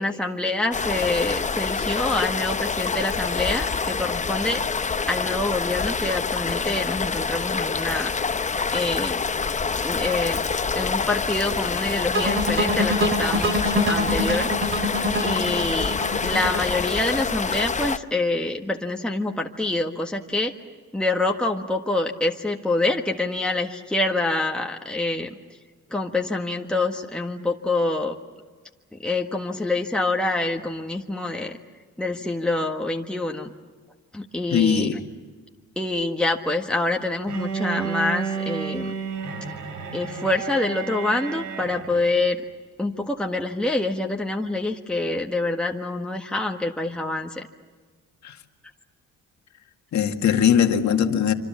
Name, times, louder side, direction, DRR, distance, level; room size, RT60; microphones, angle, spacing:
voice 1, 0.0-4.6 5.1-8.1 8.7-9.2 9.8-10.4 10.7-14.5 15.2-15.9 16.2-20.5 20.9-25.3 25.9-28.2 29.0-31.6 32.0-33.5 34.1-35.0 35.7-38.9 39.9-42.4 42.8-47.5, left 2 dB, 5° left, 1 dB, 1.6 m, -26 dB
sound 1, 0.7-18.0, left 5 dB, 25° left, 0.8 m, -26 dB
sound 2, 12.1-17.2, equal, 40° right, 2.6 m, -25 dB
voice 2, 34.5-35.0 48.2-48.3 49.9-51.3, left 8 dB, 70° left, 5 dB, 2.0 m, -20 dB
Bowed string instrument, 37.3-42.1, right 6 dB, 75° right, 3.4 m, -31 dB
26.5 x 26.0 x 7.4 m, 1.4 s
cardioid pair, 90°, 30 cm